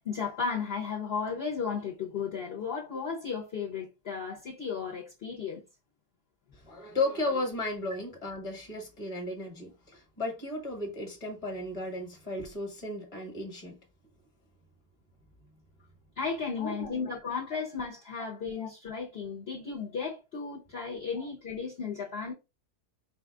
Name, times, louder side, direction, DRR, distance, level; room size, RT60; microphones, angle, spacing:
voice 1, 0.0-5.6 16.2-22.3, left 5 dB, 45° left, 1.2 m, -34 dB
voice 2, 6.5-13.8 16.6-17.1 18.6-18.7 21.1-21.2, left 2 dB, 20° left, 1.4 m, -35 dB
5.2 x 2.5 x 3.5 m
omnidirectional pair, 1.7 m